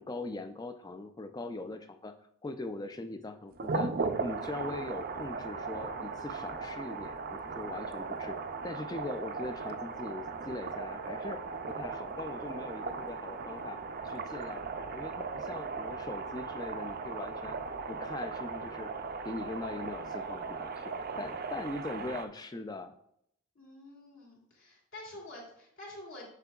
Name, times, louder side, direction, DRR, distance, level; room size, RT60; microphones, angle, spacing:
voice 1, 0.0-2.1 2.4-8.4 8.6-13.8 14.0-17.6 17.9-18.9 19.2-22.9, left 2 dB, 20° left, 8 dB, 0.3 m, -41 dB
sound 1, 3.6-22.3, right 4 dB, 45° right, 0.4 m, -37 dB
voice 2, 23.5-26.3, left 1 dB, 60° left, -3 dB, 2.4 m, -48 dB
8.1 x 5.9 x 2.3 m, 0.72 s
head